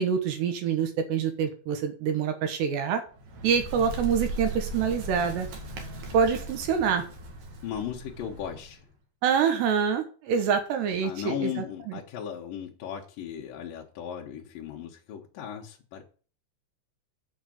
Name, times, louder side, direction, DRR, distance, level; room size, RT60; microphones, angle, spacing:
voice 1, 0.0-3.0 3.4-5.5 6.1-7.0 9.2-11.6, right 7 dB, 70° right, 6 dB, 3.1 m, -26 dB
Bird, 3.1-8.8, right 1 dB, 55° right, 2.8 m, -38 dB
voice 2, 7.6-8.8 11.0-16.0, left 9 dB, 75° left, -1 dB, 2.1 m, -36 dB
8.0 x 6.2 x 7.6 m, 0.40 s
omnidirectional pair, 5.5 m